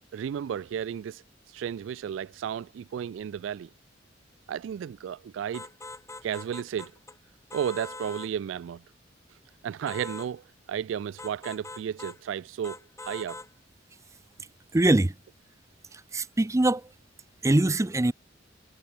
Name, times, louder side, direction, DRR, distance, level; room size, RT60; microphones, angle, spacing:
voice 1, 0.1-3.7 4.5-5.7 6.2-6.9 7.5-8.8 9.6-13.4, right 8 dB, 80° right, 0.3 m, -33 dB
sound 1, 5.5-7.2 7.5-8.3 9.9-10.3 11.2-12.2 12.6-13.5, left 3 dB, 15° left, 3.2 m, -42 dB
voice 2, 14.7-15.1 15.9-16.9 17.4-18.1, right 2 dB, 15° right, 0.5 m, -23 dB
head